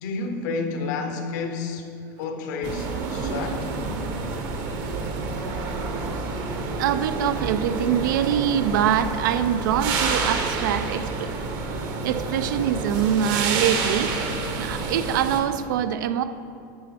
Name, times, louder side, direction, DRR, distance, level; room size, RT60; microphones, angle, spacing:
voice 1, 0.0-1.9 2.2-3.7, left 4 dB, 70° left, 0.8 m, -30 dB
sound 1, 2.6-15.4, right 3 dB, 40° right, 0.8 m, -28 dB
voice 2, 6.8-11.3 11.8-14.3 14.6-16.2, right 9 dB, 85° right, 0.4 m, -24 dB
10.5 x 4.2 x 4.3 m
supercardioid pair, 155°, 10 cm